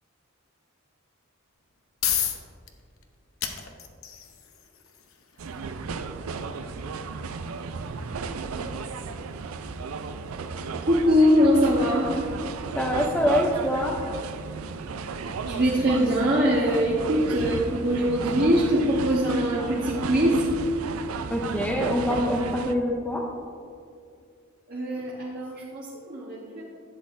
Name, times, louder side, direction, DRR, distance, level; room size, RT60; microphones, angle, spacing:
sound 1, 1.5-16.4, left 9 dB, 80° left, 0.8 m, -38 dB
sound 2, 5.4-22.7, right 4 dB, 90° right, 0.5 m, -34 dB
voice 1, 10.8-12.1 15.4-20.5 24.7-26.6, equal, 50° right, -6 dB, 1.2 m, -22 dB
voice 2, 12.8-14.0 21.3-23.2, left 1 dB, 5° left, -2 dB, 0.6 m, -25 dB
11.5 x 8.3 x 2.6 m, 2.3 s
head